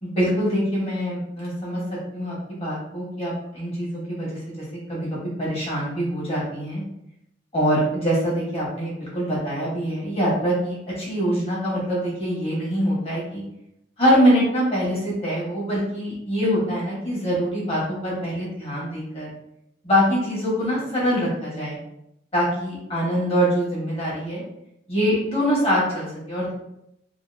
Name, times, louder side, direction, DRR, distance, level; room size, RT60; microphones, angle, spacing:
voice 1, 0.0-1.8 2.1-4.4 4.7-6.8 7.5-13.4 14.0-19.3 19.8-21.8 22.3-24.4 24.9-26.5, equal, 30° left, -6 dB, 1.2 m, -24 dB
2.8 x 2.6 x 2.5 m, 0.80 s
head